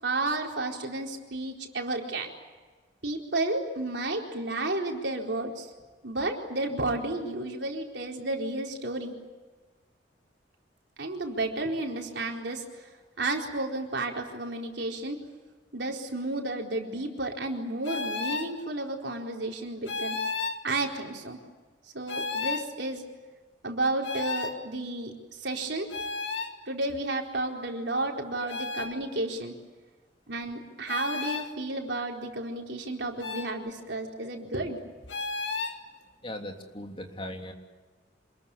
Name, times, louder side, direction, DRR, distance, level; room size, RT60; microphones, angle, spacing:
voice 1, 0.0-2.3 3.0-5.7 6.0-9.1 11.0-12.9 13.2-15.2 15.7-20.2 20.6-21.4 21.9-23.0 23.6-25.9 26.7-29.5 30.3-34.8, right 2 dB, 70° right, 1 dB, 4.4 m, -32 dB
cartoon whining, 17.8-18.5 19.9-20.6 22.1-22.7 24.0-24.6 25.9-26.5 28.5-28.9 30.9-31.5 33.2-33.5 35.1-35.8, left 4 dB, 70° left, 2.3 m, -32 dB
voice 2, 36.2-37.5, left 1 dB, 30° left, 3 dB, 3.2 m, -39 dB
27.5 x 21.5 x 8.6 m, 1.4 s
head